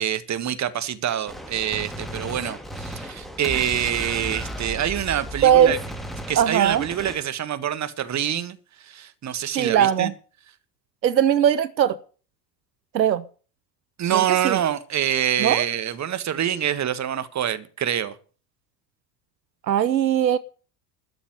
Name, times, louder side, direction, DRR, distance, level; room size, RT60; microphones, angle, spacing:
voice 1, 0.0-5.8 6.3-10.1 14.0-18.1, right 10 dB, 35° right, 1.6 m, -26 dB
Gunshot gunfire, 1.3-7.2, right 1 dB, ahead, 2.5 m, -35 dB
voice 2, 5.4-5.8 6.4-6.9 9.5-10.1 11.0-12.0 12.9-13.2 14.1-14.6 15.4-15.6 19.6-20.4, right 9 dB, 85° right, 0.8 m, -19 dB
13.0 x 6.9 x 9.6 m
figure-of-eight pair, 65°, 50 cm